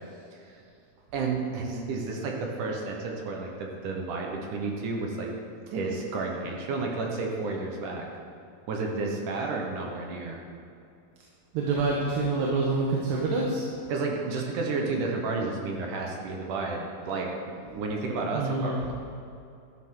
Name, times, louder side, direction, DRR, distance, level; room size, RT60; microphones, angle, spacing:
voice 1, 1.1-5.3 5.7-8.1 8.7-10.4 13.9-16.8 17.1-17.3 17.6-18.9, right 3 dB, 65° right, 0 dB, 2.2 m, -31 dB
voice 2, 11.5-13.7 18.3-18.8, right 3 dB, 90° right, -3 dB, 3.3 m, -26 dB
12.5 x 12.5 x 3.8 m, 2.5 s
omnidirectional pair, 4.7 m